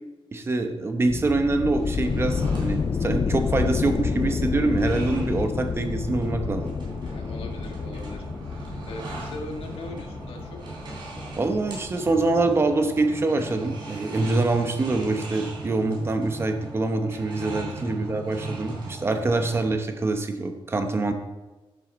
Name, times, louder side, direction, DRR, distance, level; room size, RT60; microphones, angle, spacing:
voice 1, 0.3-6.7 11.4-21.1, right 2 dB, 25° right, 6 dB, 0.9 m, -25 dB
sound 1, 1.1-12.5, left 5 dB, 30° left, 0.4 m, -29 dB
sound 2, 1.7-19.8, right 2 dB, 55° right, 3.7 m, -39 dB
voice 2, 7.0-10.6 17.9-18.2, left 2 dB, 90° left, 3 dB, 1.6 m, -40 dB
11.5 x 7.6 x 4.1 m, 1.2 s
wide cardioid pair, 170°, 9 cm